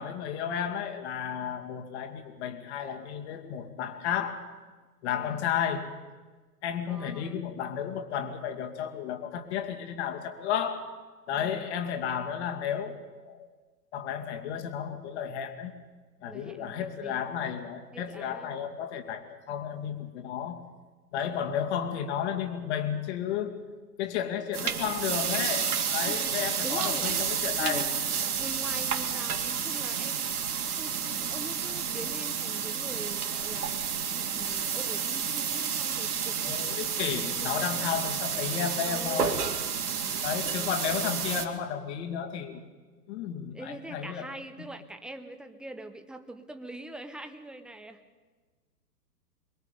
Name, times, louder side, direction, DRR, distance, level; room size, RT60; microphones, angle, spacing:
voice 1, 0.0-4.4 5.0-5.9 6.6-10.8 11.3-13.5 13.9-15.7 16.2-20.6 21.1-23.6 24.0-27.9 36.4-39.4 40.2-42.6 43.1-44.3 44.6-44.7, left 8 dB, 45° left, 5 dB, 2.5 m, -33 dB
voice 2, 5.0-5.5 6.9-7.4 11.3-11.7 16.3-17.2 17.9-18.5 24.6-24.9 26.0-26.4 26.6-27.2 27.6-28.0 28.4-30.3 30.8-38.1 38.8-39.4 40.0-40.8 43.5-48.0, right 1 dB, ahead, 8 dB, 0.8 m, -43 dB
sound 1, 24.5-41.4, right 7 dB, 65° right, 2.3 m, -30 dB
23.5 x 23.0 x 5.3 m, 1.4 s
figure-of-eight pair, 110°, 48 cm